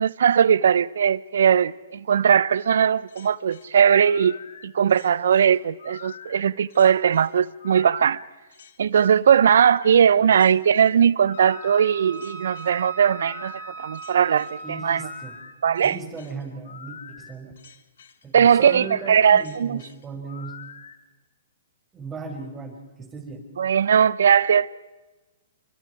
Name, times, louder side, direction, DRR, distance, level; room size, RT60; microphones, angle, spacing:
voice 1, 0.0-4.4 4.6-8.2 8.8-15.1 15.6-16.0 18.3-19.8 23.6-24.8, right 8 dB, 75° right, 0.8 m, -19 dB
sound 1, 3.1-21.0, left 7 dB, 75° left, 2.6 m, -45 dB
Wind instrument woodwind instrument, 11.3-15.5, right 4 dB, 60° left, 6.1 m, -39 dB
voice 2, 14.6-15.4 15.8-17.5 18.2-20.6 21.9-23.4, right 4 dB, 15° right, 5.8 m, -37 dB
29.0 x 25.0 x 4.8 m
hypercardioid pair, 130°, 0 cm